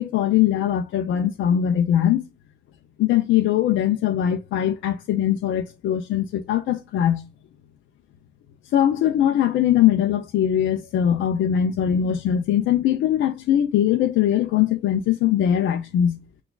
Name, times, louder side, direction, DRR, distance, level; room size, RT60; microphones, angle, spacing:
voice 1, 0.0-2.2 3.0-7.2 8.7-16.2, left 10 dB, 75° left, 0.5 m, -21 dB
5.8 x 2.3 x 2.3 m
cardioid pair, 90°, 20 cm